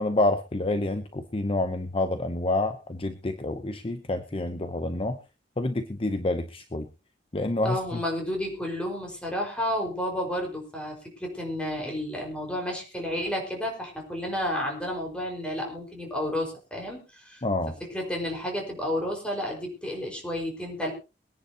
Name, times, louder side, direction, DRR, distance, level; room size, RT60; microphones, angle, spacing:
voice 1, 0.0-5.2 5.6-6.9 7.3-8.0 17.4-17.8, left 2 dB, 30° left, 9 dB, 0.8 m, -28 dB
voice 2, 7.6-10.9 11.2-17.4 17.9-20.9, left 1 dB, 5° left, 0 dB, 4.8 m, -31 dB
23.0 x 10.5 x 2.9 m, 0.29 s
head